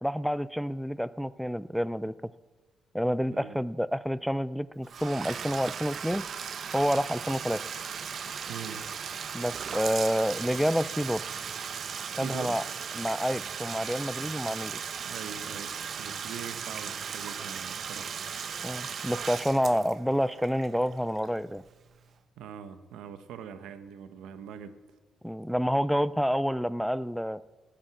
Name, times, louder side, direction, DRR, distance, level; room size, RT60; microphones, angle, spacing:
voice 1, 0.0-2.3 2.9-6.2 6.7-7.6 9.3-11.2 12.1-12.6 12.9-14.8 18.6-21.6 25.2-27.4, equal, ahead, 17 dB, 0.4 m, -28 dB
Bathtub (filling or washing), 4.8-21.6, right 7 dB, 55° right, 0.8 m, -37 dB
voice 2, 8.5-8.8 12.1-12.6 15.0-18.2 22.4-24.8, right 8 dB, 85° right, 10 dB, 1.0 m, -42 dB
9.8 x 8.9 x 8.0 m, 1.2 s
cardioid pair, 90°, 0 cm